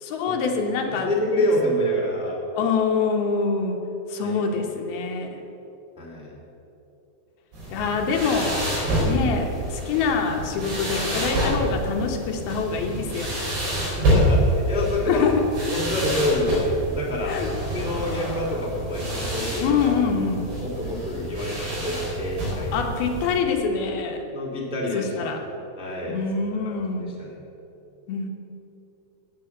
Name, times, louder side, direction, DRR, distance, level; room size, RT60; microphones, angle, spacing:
voice 1, 0.0-1.1 2.6-3.8 4.1-5.3 7.7-8.6 9.0-13.3 15.1-15.5 17.2-17.5 19.6-20.5 22.7-24.2 24.9-25.4 26.1-27.2 28.1-28.3, left 5 dB, 75° left, 3 dB, 3.0 m, -25 dB
voice 2, 0.8-2.4 4.2-4.4 6.0-6.3 13.8-15.2 15.7-19.7 20.6-22.8 24.3-25.3 25.7-26.2 26.6-27.4, left 1 dB, ahead, -3 dB, 1.7 m, -27 dB
sound 1, 7.5-23.4, right 1 dB, 90° right, 6.2 m, -27 dB
17.0 x 7.3 x 7.9 m, 2.9 s
omnidirectional pair, 4.5 m